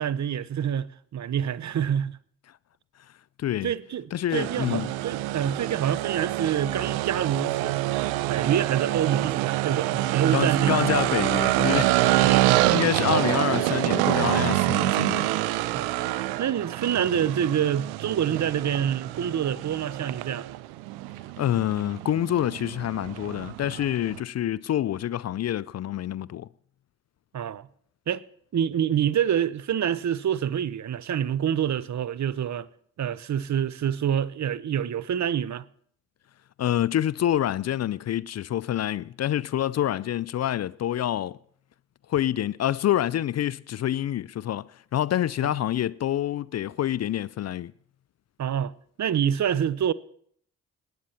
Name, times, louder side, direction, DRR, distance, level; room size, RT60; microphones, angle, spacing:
voice 1, 0.0-2.2 3.6-7.8 8.3-11.0 12.1-12.8 15.7-16.0 16.4-20.5 27.3-27.7 28.1-28.2 28.5-32.7 33.0-35.6 48.4-48.7 49.0-49.9, right 9 dB, 50° right, 0.7 m, -27 dB
voice 2, 3.4-3.7 4.1-4.9 10.3-15.3 21.4-26.5 36.6-41.4 42.1-47.7, left 11 dB, 45° left, 0.4 m, -27 dB
sound 1, 4.3-24.2, right 16 dB, 90° right, 0.5 m, -26 dB
18.5 x 9.4 x 4.3 m
hypercardioid pair, 40°, 37 cm